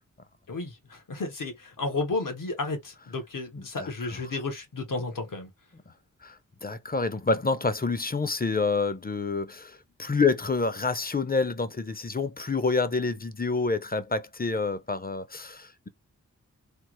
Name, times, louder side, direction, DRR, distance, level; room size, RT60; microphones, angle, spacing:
voice 1, 0.5-5.5, left 3 dB, 75° left, 1.3 m, -32 dB
voice 2, 6.2-15.9, left 4 dB, 30° left, 0.6 m, -28 dB
3.4 x 2.0 x 3.0 m
cardioid pair, 50°, 33 cm